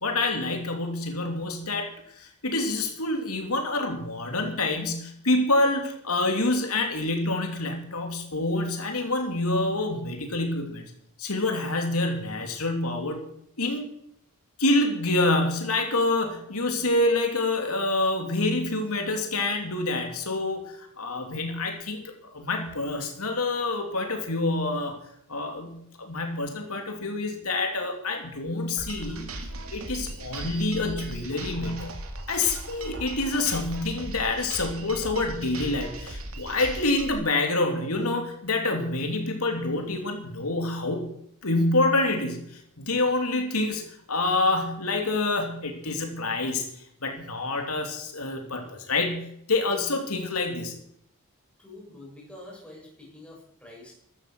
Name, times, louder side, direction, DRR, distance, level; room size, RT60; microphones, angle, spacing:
voice 1, 0.0-10.9 11.2-13.2 13.6-13.9 14.6-25.0 25.3-29.3 29.7-31.9 32.3-41.1 41.4-43.8 44.1-50.7, left 2 dB, 80° left, 3 dB, 3.1 m, -27 dB
sound 1, 28.8-37.1, right 2 dB, 70° right, 2.8 m, -38 dB
voice 2, 51.6-53.9, left 1 dB, 5° left, -2 dB, 6.5 m, -46 dB
15.0 x 12.5 x 6.3 m, 0.72 s
head